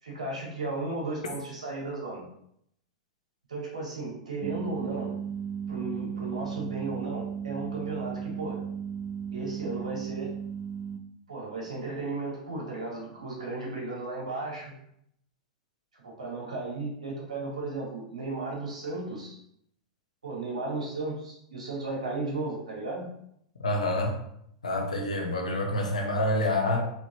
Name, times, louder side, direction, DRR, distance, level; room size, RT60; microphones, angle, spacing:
voice 1, 0.0-2.3 3.5-5.2 5.7-8.7 9.3-10.3 11.3-14.7 16.0-19.4 20.2-23.1, right 3 dB, 85° right, -3 dB, 1.9 m, -35 dB
sound 1, 4.4-11.0, right 7 dB, 40° right, 0.5 m, -35 dB
voice 2, 23.6-24.1 24.6-26.8, left 1 dB, 90° left, 2 dB, 1.0 m, -27 dB
4.5 x 3.9 x 2.9 m, 0.72 s
hypercardioid pair, 100°, 4 cm